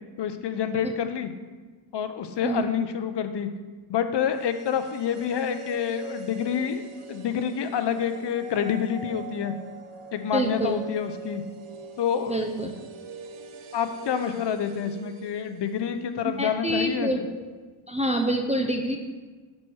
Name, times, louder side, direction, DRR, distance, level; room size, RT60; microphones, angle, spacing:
voice 1, 0.2-1.3 1.9-3.5 3.9-6.8 7.1-9.5 10.1-11.4 12.0-12.4 13.7-17.1, left 8 dB, 55° left, 9 dB, 0.5 m, -28 dB
sound 1, 4.2-16.3 16.6-16.7, right 6 dB, 85° right, 0.7 m, -43 dB
voice 2, 10.3-10.8 12.3-12.7 16.2-17.2 17.9-19.0, right 1 dB, 15° right, 2 dB, 0.3 m, -26 dB
6.1 x 4.3 x 4.5 m, 1.4 s
wide cardioid pair, 115°, 50 cm